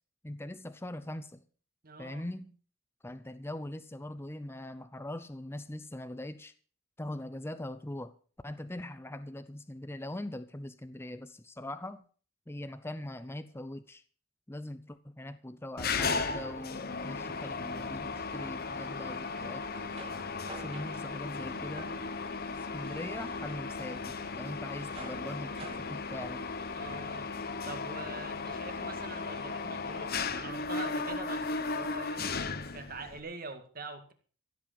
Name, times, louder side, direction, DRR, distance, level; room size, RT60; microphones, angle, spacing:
voice 1, 0.2-1.4 2.0-2.5 3.0-6.5 7.0-8.1 8.4-12.0 12.5-14.0 14.5-19.7 20.5-21.9 22.7-26.5, left 1 dB, 10° left, 0.6 m, -41 dB
voice 2, 1.8-2.3 26.8-27.3 27.7-32.2 32.7-34.1, right 3 dB, 45° right, 2.2 m, -44 dB
Mechanisms, 15.8-33.2, left 4 dB, 45° left, 1.1 m, -36 dB
sound 1, 19.2-27.0, right 2 dB, 30° right, 2.6 m, -52 dB
15.5 x 8.3 x 6.9 m
head